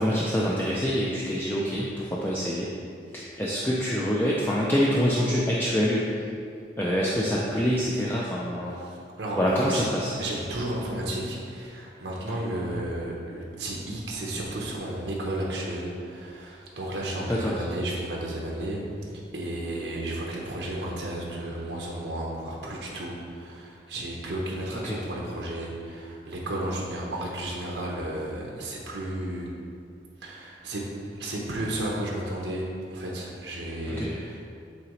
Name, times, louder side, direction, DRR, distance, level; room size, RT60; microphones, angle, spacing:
voice 1, 0.0-2.7 3.1-6.1 6.8-8.7 9.4-10.1 12.3-12.4 17.3-17.6 24.7-25.0 33.9-34.4, equal, 10° left, -5 dB, 0.5 m, -26 dB
voice 2, 8.8-9.9 10.2-18.8 19.1-29.5 30.2-30.8 31.1-34.4, right 1 dB, 90° right, -3 dB, 0.9 m, -33 dB
8.5 x 3.9 x 3.2 m, 2.4 s
head